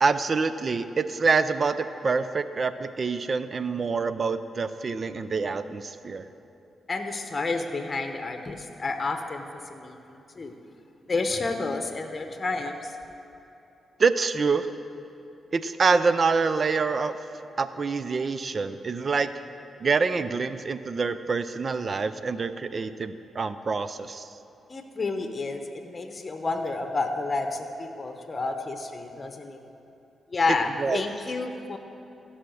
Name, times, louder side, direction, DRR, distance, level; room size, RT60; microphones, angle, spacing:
voice 1, 0.0-6.3 14.0-14.7 15.5-17.1 17.6-19.3 19.8-24.3 30.8-31.0, right 4 dB, 50° right, 12 dB, 0.5 m, -26 dB
voice 2, 6.9-9.4 9.7-10.5 11.1-13.0 24.7-29.6 30.3-31.8, left 3 dB, 40° left, 6 dB, 1.0 m, -30 dB
14.5 x 5.7 x 6.4 m, 2.8 s
cardioid pair, 60°, 0 cm